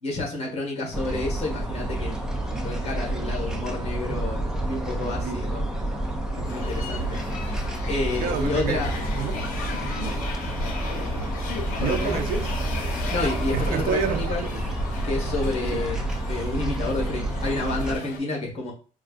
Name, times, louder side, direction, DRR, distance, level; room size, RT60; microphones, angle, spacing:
voice 1, 0.0-5.7 6.3-7.2 7.9-8.9 11.8-12.2 13.1-14.4 15.0-18.7, left 2 dB, 45° left, 1.4 m, -30 dB
sound 1, 0.9-18.0, right 1 dB, 5° right, 0.4 m, -29 dB
sound 2, 6.5-18.2, left 4 dB, 75° left, 0.7 m, -36 dB
voice 2, 8.2-8.8 9.1-9.5 9.8-10.2 11.8-12.6 13.5-14.6 15.7-15.9, right 6 dB, 90° right, 0.5 m, -29 dB
4.5 x 2.4 x 2.4 m
cardioid pair, 165°, 15 cm